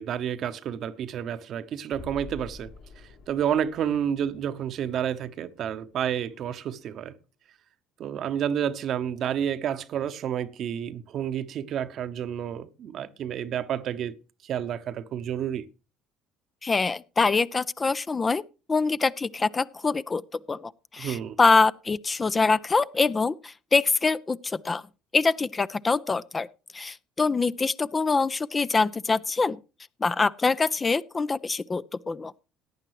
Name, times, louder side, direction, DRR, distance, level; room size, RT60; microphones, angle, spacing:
voice 1, 0.0-2.7 3.0-7.1 8.0-14.1 14.4-15.6 21.0-21.4, right 9 dB, 50° right, 0.9 m, -30 dB
sound 1, 1.9-7.0, left 4 dB, 65° left, 4.6 m, -49 dB
voice 2, 16.6-18.4 18.7-24.8 25.1-26.5 26.7-29.6 30.0-32.3, left 4 dB, 25° left, 0.5 m, -24 dB
17.5 x 9.8 x 3.1 m
figure-of-eight pair, 55°, 0 cm